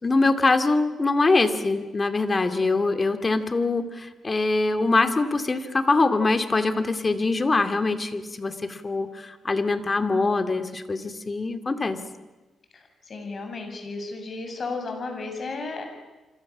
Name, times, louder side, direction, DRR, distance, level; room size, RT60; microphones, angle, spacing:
voice 1, 0.0-12.0, left 3 dB, 30° left, 9 dB, 2.5 m, -23 dB
voice 2, 13.1-15.9, left 3 dB, 45° left, 5 dB, 7.5 m, -33 dB
28.0 x 26.0 x 7.4 m, 1.2 s
cardioid pair, 105°, 0 cm